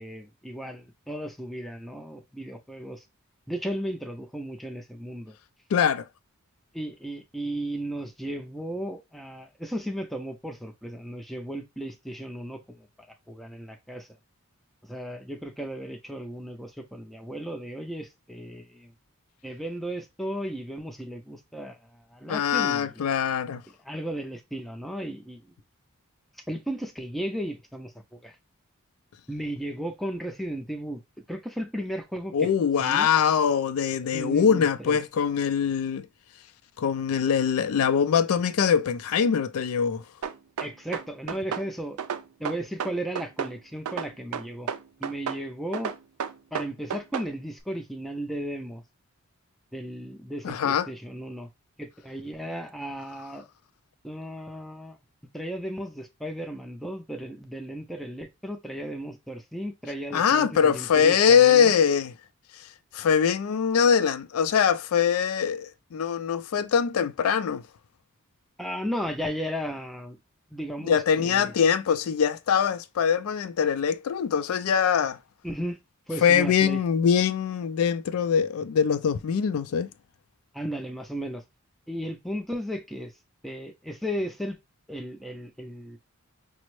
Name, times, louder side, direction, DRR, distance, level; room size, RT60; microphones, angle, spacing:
voice 1, 0.0-3.0 3.5-5.3 6.7-12.9 13.3-14.1 14.9-18.9 19.4-22.9 23.8-25.5 26.5-27.9 28.2-28.3 29.3-31.0 31.3-32.5 32.8-33.1 34.1-35.0 40.6-42.0 42.4-44.7 45.0-45.9 46.5-48.8 49.7-51.5 51.8-53.4 54.0-55.0 55.3-61.7 68.6-70.2 70.5-71.5 75.4-75.8 76.1-76.8 80.5-81.4 81.9-83.1 83.4-84.6 84.9-86.0, equal, ahead, 0.4 m, -35 dB
voice 2, 5.7-6.1 22.3-23.6 32.3-36.1 36.8-40.0 50.4-50.9 60.1-62.1 62.5-67.6 70.8-75.2 76.2-79.9, left 7 dB, 80° left, 0.4 m, -23 dB
sound 1, 40.2-41.7 42.0-43.6 43.9-45.4 45.7-47.3, right 7 dB, 85° right, 0.4 m, -32 dB
5.1 x 2.0 x 3.0 m
head